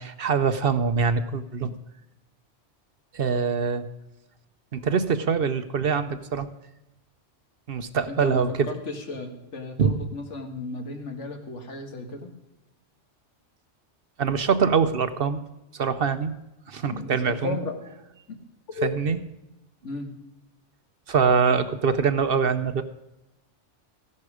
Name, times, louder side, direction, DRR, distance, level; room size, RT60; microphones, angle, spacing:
voice 1, 0.0-1.7 3.1-3.8 4.7-6.5 7.7-8.7 9.8-9.9 14.2-15.4 15.7-16.3 16.7-17.6 18.8-19.2 21.1-22.8, right 6 dB, 55° right, 11 dB, 0.9 m, -24 dB
voice 2, 8.1-12.3 16.9-17.7 18.3-18.4 18.7-19.0 19.8-20.1, left 3 dB, 75° left, 4 dB, 2.0 m, -34 dB
15.0 x 11.0 x 4.9 m, 0.95 s
omnidirectional pair, 1.2 m